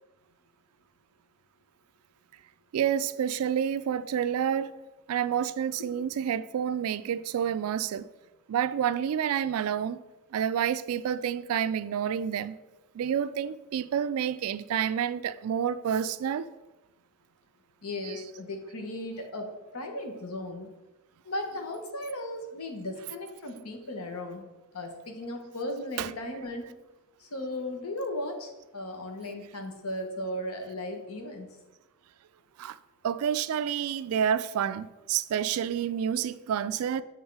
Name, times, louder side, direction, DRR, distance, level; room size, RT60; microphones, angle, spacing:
voice 1, 2.7-4.7 5.1-8.1 8.5-10.0 10.3-12.6 12.9-16.5 18.0-18.1 26.0-26.1 32.6-32.8 33.0-37.0, right 8 dB, 75° right, 0.3 m, -29 dB
voice 2, 17.8-20.7 21.2-24.4 24.7-26.6 27.2-31.5, left 1 dB, 85° left, 1.1 m, -36 dB
7.3 x 3.6 x 4.7 m
head